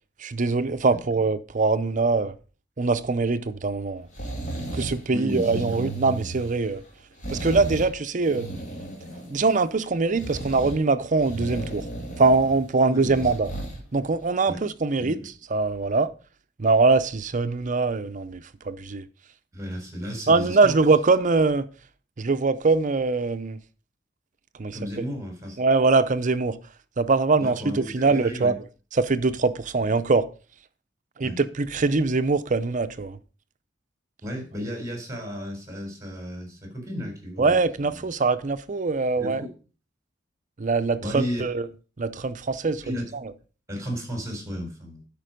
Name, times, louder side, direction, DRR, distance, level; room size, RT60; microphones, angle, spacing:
voice 1, 0.2-2.3 2.8-4.1 4.7-6.8 7.3-8.5 9.3-11.9 12.2-13.5 13.9-15.2 15.5-16.1 16.6-19.0 20.3-21.7 22.2-23.6 24.6-25.0 25.6-26.6 27.0-28.5 28.9-30.3 31.2-33.2 37.4-39.4 40.6-41.7 42.0-42.9 43.2-43.3, right 3 dB, 45° right, 0.6 m, -23 dB
sound 1, 4.2-5.0 5.3-6.7 7.2-7.9 8.2-9.6 10.1-10.8 11.2-12.6 13.1-13.8 14.2-14.3, right 2 dB, 40° left, 2.7 m, -34 dB
voice 2, 5.1-5.8 12.9-13.2 14.5-14.6 15.0-15.3 19.5-20.8 24.7-25.6 27.4-28.6 31.2-31.4 34.2-37.8 39.2-39.5 41.0-41.4 42.8-43.1 43.7-45.0, equal, 15° right, 3.8 m, -34 dB
12.0 x 5.3 x 5.1 m
head